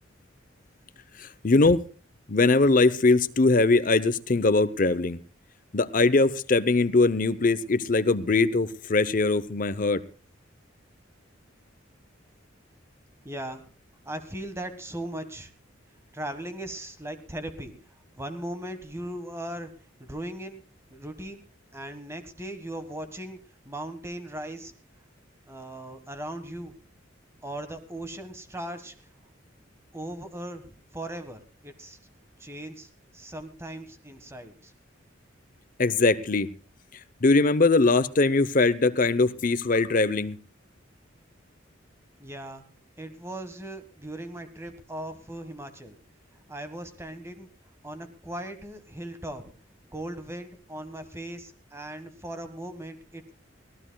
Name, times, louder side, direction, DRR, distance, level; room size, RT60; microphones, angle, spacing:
voice 1, 1.2-1.8 2.3-5.2 5.7-10.0 35.8-36.5 37.2-40.4, left 3 dB, 45° left, 0.7 m, -21 dB
voice 2, 13.2-13.7 14.0-15.5 16.1-17.7 18.2-19.7 20.0-20.6 20.9-21.4 21.7-23.4 23.6-24.7 25.5-26.7 27.4-29.1 29.9-32.0 32.4-34.7 42.2-42.6 43.0-46.0 46.5-47.5 47.8-49.5 49.9-53.3, right 1 dB, 15° right, 1.5 m, -38 dB
24.0 x 16.5 x 2.3 m
head